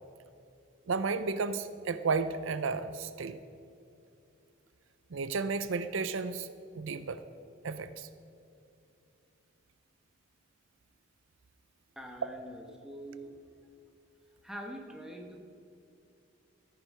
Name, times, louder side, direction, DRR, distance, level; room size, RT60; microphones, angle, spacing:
voice 1, 0.9-3.4 5.1-7.2 7.6-8.1, right 4 dB, 75° right, 12 dB, 0.5 m, -33 dB
voice 2, 12.0-13.4 14.4-15.4, equal, ahead, 2 dB, 1.2 m, -44 dB
14.0 x 9.7 x 5.5 m, 2.6 s
head